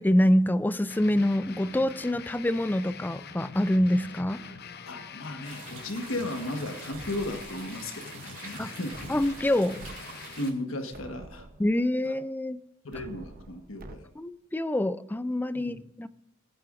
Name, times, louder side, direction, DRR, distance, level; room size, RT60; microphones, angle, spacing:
voice 1, 0.0-4.4 8.6-8.7 9.1-9.8 11.6-12.6 14.2-16.1, left 1 dB, 10° left, 15 dB, 0.3 m, -26 dB
sound 1, 0.9-10.5, left 6 dB, 50° left, 0.7 m, -44 dB
voice 2, 4.9-9.0 10.4-11.5 12.0-12.1 12.8-14.0 15.5-15.8, left 1 dB, 75° left, 6 dB, 1.4 m, -35 dB
sound 2, 5.4-10.5, right 6 dB, 70° right, 3.1 m, -46 dB
sound 3, 6.9-7.9 8.9-10.0 10.4-10.5 10.9-11.9 12.9-14.0, right 2 dB, 45° right, 0.8 m, -47 dB
19.5 x 9.2 x 2.5 m, 0.87 s
head